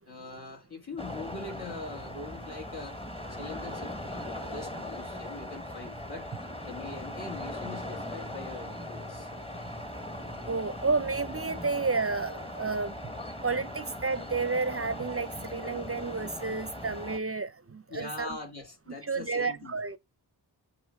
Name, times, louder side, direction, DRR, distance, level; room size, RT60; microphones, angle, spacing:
voice 1, 0.1-3.0 3.3-6.3 6.7-9.3 17.9-19.8, left 3 dB, 65° left, 2.5 m, -42 dB
sound 1, 1.0-17.2, left 1 dB, 15° left, 1.1 m, -39 dB
sound 2, 3.7-16.5, right 1 dB, 40° left, 4.2 m, -54 dB
voice 2, 10.5-13.1 13.4-18.4 19.0-20.0, right 4 dB, 35° right, 0.5 m, -31 dB
8.8 x 3.0 x 4.7 m
wide cardioid pair, 70°, 41 cm